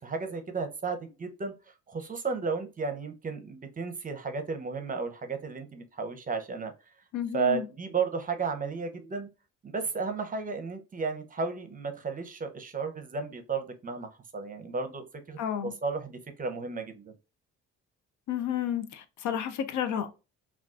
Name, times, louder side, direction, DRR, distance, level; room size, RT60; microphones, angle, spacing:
voice 1, 0.0-1.5 1.9-6.7 7.3-9.3 9.6-17.1, right 5 dB, 30° right, 0.6 m, -33 dB
voice 2, 7.1-7.7 15.4-15.7 18.3-20.1, left 9 dB, 70° left, 0.5 m, -31 dB
3.6 x 2.3 x 2.3 m
cardioid pair, 90°, 30 cm